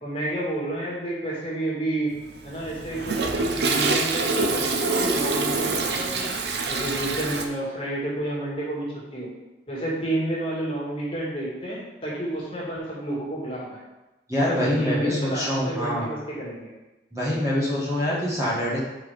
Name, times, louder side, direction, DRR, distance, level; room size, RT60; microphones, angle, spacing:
voice 1, 0.0-2.1 2.4-6.3 6.7-9.3 9.7-13.8 14.4-16.7, right 1 dB, 30° left, -6 dB, 2.1 m, -30 dB
Toilet flush, 2.2-7.4, right 3 dB, 65° right, 0.7 m, -25 dB
voice 2, 14.3-16.1 17.1-18.8, left 1 dB, 15° right, -7 dB, 1.6 m, -25 dB
5.7 x 4.7 x 5.0 m, 1.0 s
head